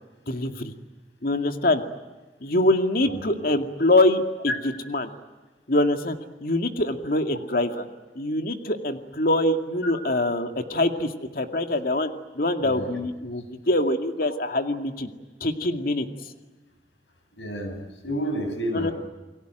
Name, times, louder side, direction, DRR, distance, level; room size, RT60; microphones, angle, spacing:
voice 1, 0.3-0.7 1.2-1.8 2.4-4.2 4.9-5.1 5.7-7.9 8.2-15.1 15.4-16.1 18.7-18.9, left 1 dB, 55° left, 6 dB, 2.3 m, -24 dB
voice 2, 12.6-12.9 17.4-18.9, equal, 90° left, 6 dB, 7.9 m, -30 dB
29.5 x 21.5 x 9.2 m, 1.2 s
head